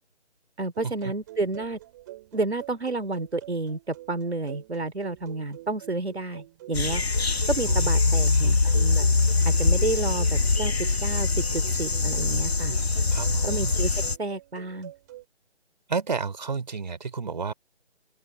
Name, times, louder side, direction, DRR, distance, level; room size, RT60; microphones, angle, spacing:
voice 1, 0.6-1.8 2.3-7.0 7.5-9.1 9.4-10.7 11.0-12.7 13.5-13.9 14.2-14.9, right 3 dB, 65° right, 3.1 m, -30 dB
sound 1, 0.7-15.2, right 16 dB, 15° right, 5.2 m, -46 dB
sound 2, 6.7-14.2, left 3 dB, 60° left, 1.2 m, -23 dB
voice 2, 7.7-8.6 9.3-9.4 13.1-13.7 15.9-17.5, right 5 dB, 40° right, 4.7 m, -32 dB
open air
figure-of-eight pair, 155°, 35 cm